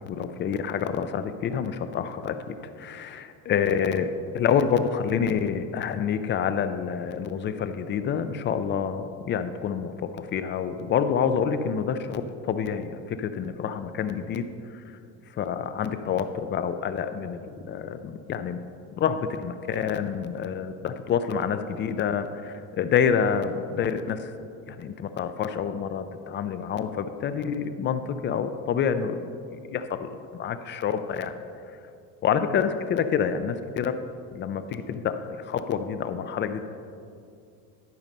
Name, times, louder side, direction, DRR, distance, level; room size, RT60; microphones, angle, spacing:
voice 1, 0.1-14.4 14.7-15.0 15.3-18.6 18.9-24.3 24.7-29.3 29.7-31.3 31.7-31.8 32.2-34.0 34.3-36.6, left 7 dB, 30° left, 10 dB, 0.4 m, -28 dB
12.0 x 5.4 x 5.3 m, 2.4 s
cardioid pair, 155°, 36 cm